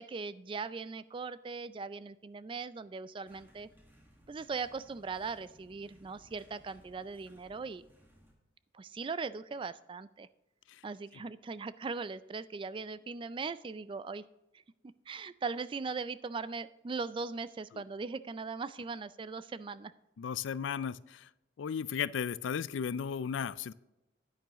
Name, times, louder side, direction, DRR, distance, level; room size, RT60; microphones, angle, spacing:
voice 1, 0.0-3.7 4.3-7.8 8.7-10.3 10.8-14.2 15.1-19.9, right 4 dB, 25° right, 16 dB, 0.3 m, -39 dB
sound 1, 3.3-8.3, equal, 10° right, 1.7 m, -62 dB
voice 2, 20.2-21.3 21.6-23.7, left 7 dB, 75° left, 18 dB, 0.4 m, -35 dB
10.0 x 9.3 x 3.0 m, 0.95 s
head